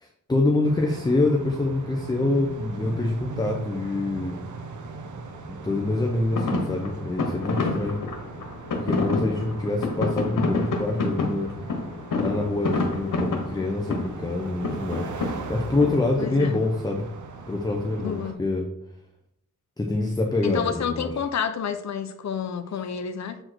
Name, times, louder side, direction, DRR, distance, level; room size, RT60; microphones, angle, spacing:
voice 1, 0.0-4.4 5.5-8.0 8.7-11.5 12.2-17.1 17.5-18.7 19.8-21.1, left 2 dB, 15° left, 0.8 m, -26 dB
sound 1, 0.6-18.3, right 4 dB, 70° right, 0.9 m, -39 dB
sound 2, 6.3-16.3, left 3 dB, 85° left, 1.4 m, -28 dB
voice 2, 16.2-16.6 18.0-18.4 20.4-23.4, left 7 dB, 60° left, 0.7 m, -29 dB
7.7 x 4.3 x 4.6 m
wide cardioid pair, 120°, 31 cm